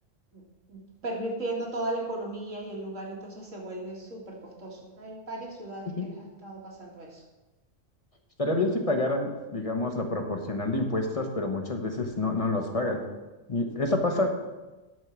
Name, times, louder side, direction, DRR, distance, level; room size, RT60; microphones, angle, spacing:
voice 1, 0.7-7.2, right 1 dB, 90° right, -3 dB, 2.7 m, -36 dB
voice 2, 8.4-13.0 13.5-14.3, left 2 dB, 30° left, 3 dB, 1.1 m, -28 dB
10.5 x 4.6 x 7.4 m, 1.1 s
omnidirectional pair, 1.3 m